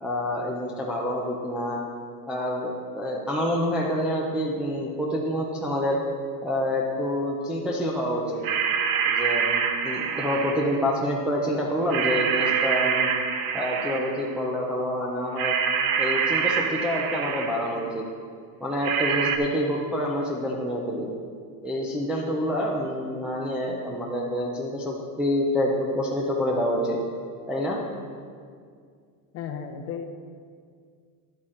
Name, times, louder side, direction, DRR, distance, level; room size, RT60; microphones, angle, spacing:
voice 1, 0.0-1.8 2.3-6.0 6.4-8.4 9.0-13.1 13.5-15.5 16.0-18.0 18.6-21.1 21.6-27.0 27.5-27.8, equal, 5° right, -4 dB, 0.4 m, -27 dB
sound 1, 8.4-10.9 11.9-14.3 15.4-17.8 18.8-19.4, right 6 dB, 70° right, 0.9 m, -26 dB
voice 2, 29.3-30.1, left 7 dB, 35° left, 7 dB, 0.7 m, -34 dB
10.5 x 8.3 x 3.7 m, 2.1 s
supercardioid pair, 145°, 46 cm